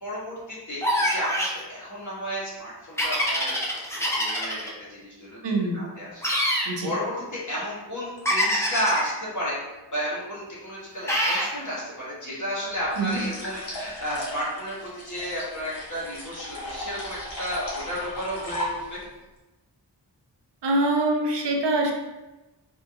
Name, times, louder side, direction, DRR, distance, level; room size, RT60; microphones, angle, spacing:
voice 1, 0.0-19.0, equal, 45° left, -7 dB, 1.4 m, -33 dB
sound 1, 0.8-1.6 3.0-4.7 6.2-6.7 8.2-9.1 11.1-11.5, equal, 5° left, 0.6 m, -25 dB
voice 2, 5.4-5.8 6.7-6.9 13.0-13.2 20.6-21.9, right 2 dB, 75° right, 2 dB, 0.6 m, -24 dB
sound 2, 12.9-19.1, equal, 80° left, 1.3 m, -36 dB
3.6 x 2.6 x 2.4 m, 1.1 s
wide cardioid pair, 60°, 42 cm